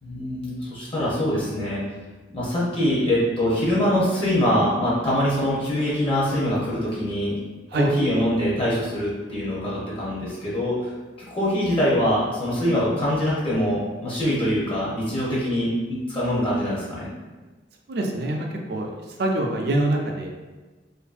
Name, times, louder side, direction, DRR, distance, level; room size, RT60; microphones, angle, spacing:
voice 1, 0.0-1.8 2.3-7.4 7.7-10.9 11.3-17.1, equal, 30° left, -7 dB, 0.6 m, -23 dB
voice 2, 17.9-18.9 19.2-20.3, right 1 dB, 60° right, 1 dB, 0.4 m, -24 dB
2.6 x 2.5 x 2.4 m, 1.2 s
head